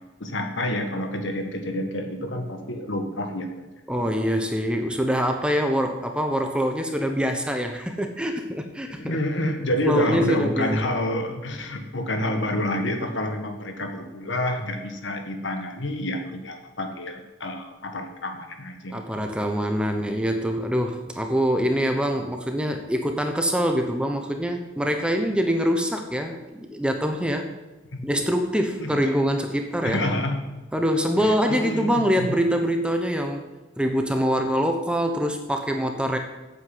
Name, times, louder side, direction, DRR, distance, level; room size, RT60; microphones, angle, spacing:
voice 1, 0.2-3.7 9.0-19.0 27.9-28.1 28.8-29.0 29.8-30.4 31.2-32.4, left 1 dB, 70° left, 5 dB, 1.7 m, -28 dB
voice 2, 3.9-9.2 9.8-10.8 18.9-27.5 28.0-30.0 30.7-33.5 33.8-36.2, equal, 5° right, 5 dB, 0.9 m, -24 dB
9.2 x 8.2 x 7.8 m, 1.1 s
head